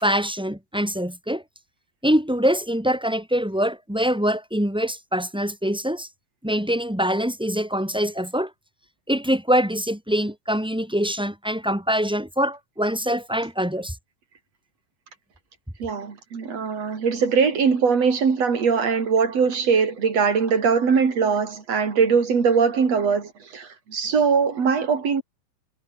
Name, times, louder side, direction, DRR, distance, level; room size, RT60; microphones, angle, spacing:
voice 1, 0.0-1.4 2.0-6.1 6.4-8.5 9.1-13.9, equal, ahead, 1.5 m, -24 dB
voice 2, 15.8-25.2, right 5 dB, 45° right, 4.6 m, -21 dB
omnidirectional pair, 4.2 m